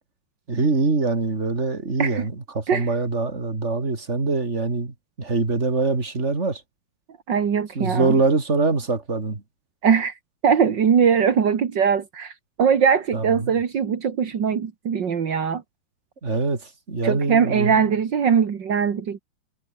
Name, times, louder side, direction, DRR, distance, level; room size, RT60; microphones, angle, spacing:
voice 1, 0.5-6.6 7.7-9.4 13.1-13.5 16.2-17.9, right 3 dB, 20° right, 2.9 m, -24 dB
voice 2, 7.3-8.1 9.8-10.1 10.4-12.3 12.6-15.6 17.0-19.2, right 7 dB, 60° right, 1.2 m, -21 dB
omnidirectional pair, 4.8 m